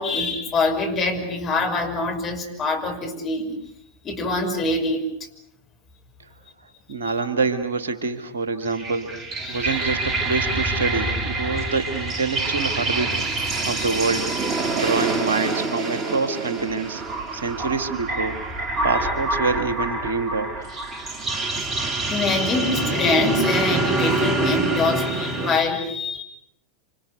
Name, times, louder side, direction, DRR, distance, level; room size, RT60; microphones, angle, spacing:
voice 1, 0.0-3.6 4.0-5.0 9.5-9.8 21.6-21.7 22.1-26.2, left 3 dB, 30° left, 3 dB, 5.8 m, -24 dB
voice 2, 6.9-9.1 9.5-13.3 13.7-14.3 14.7-17.0 17.3-18.4 18.8-20.7, right 4 dB, 70° right, 9 dB, 2.0 m, -26 dB
sound 1, 8.7-25.6, right 2 dB, 25° right, 2.6 m, -26 dB
27.5 x 26.5 x 6.8 m, 0.77 s
figure-of-eight pair, 85°, 0 cm